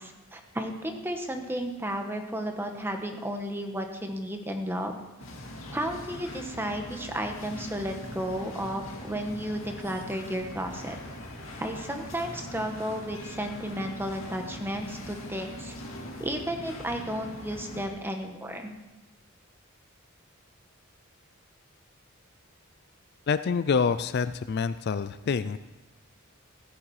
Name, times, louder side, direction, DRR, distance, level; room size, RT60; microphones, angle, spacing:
voice 1, 0.0-5.0 5.7-11.0 11.6-15.7 16.2-18.7, equal, 10° right, 4 dB, 1.3 m, -33 dB
sound 1, 5.2-17.9, left 1 dB, 65° left, 2.5 m, -41 dB
voice 2, 23.3-25.6, left 5 dB, 50° left, 13 dB, 0.4 m, -27 dB
15.0 x 9.7 x 4.9 m, 1.0 s
head